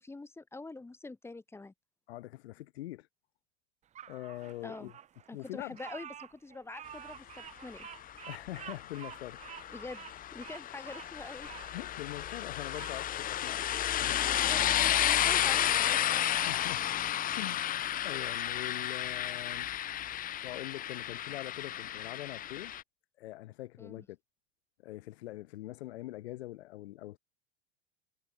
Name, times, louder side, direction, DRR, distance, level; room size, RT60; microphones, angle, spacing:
voice 1, 0.0-1.7 4.6-4.9 5.3-7.9 9.7-10.0 10.3-11.5 14.3-16.4 23.8-24.1, left 3 dB, 10° left, 2.3 m, -45 dB
voice 2, 2.1-3.1 4.1-4.9 5.3-5.8 8.3-9.4 11.7-13.7 14.0-14.2 16.3-16.8 17.4-19.7 20.4-22.7 23.2-24.2 24.8-27.2, left 16 dB, 75° left, 6.0 m, -43 dB
Bird vocalization bird call bird song, 4.0-13.0 13.4-14.4, right 10 dB, 20° right, 0.9 m, -50 dB
sound 1, 7.8-22.8, left 11 dB, 25° left, 1.0 m, -32 dB
supercardioid pair, 130°, 32 cm